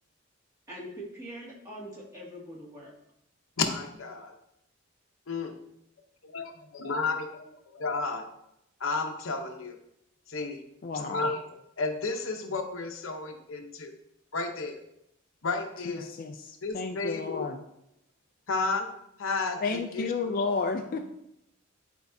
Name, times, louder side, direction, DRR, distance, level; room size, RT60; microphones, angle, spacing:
voice 1, 0.7-2.9, equal, 15° right, -6 dB, 2.1 m, -43 dB
voice 2, 3.6-4.3 5.3-5.6 6.2-8.3 8.8-9.8 10.3-10.6 11.0-13.9 14.3-14.8 15.4-16.1 16.6-17.5 18.5-18.9 19.2-20.3 20.9-21.0, left 3 dB, 75° left, 5 dB, 0.8 m, -32 dB
voice 3, 10.8-11.3 15.9-17.6 19.6-21.0, left 4 dB, 45° left, 5 dB, 0.4 m, -32 dB
10.5 x 4.5 x 2.7 m, 0.81 s
head